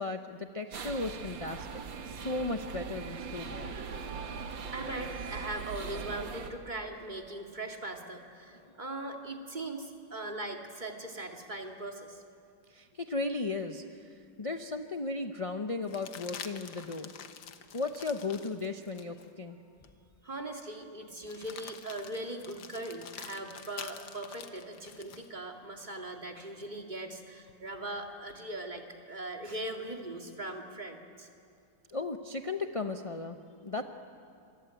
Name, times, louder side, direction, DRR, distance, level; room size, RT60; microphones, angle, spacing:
voice 1, 0.0-3.7 8.6-8.8 12.7-17.1 17.7-19.6 31.9-33.8, left 3 dB, 40° left, 5 dB, 0.5 m, -36 dB
sound 1, 0.7-6.5, right 5 dB, 90° right, 2.3 m, -40 dB
voice 2, 4.7-12.2 20.2-31.3, right 2 dB, 25° right, 3 dB, 2.2 m, -40 dB
sound 2, 14.3-14.4 15.8-19.3 19.8-19.9 21.2-25.3 27.5-28.4, left 8 dB, 90° left, 1.9 m, -47 dB
27.0 x 23.5 x 9.0 m, 2.4 s
omnidirectional pair, 2.0 m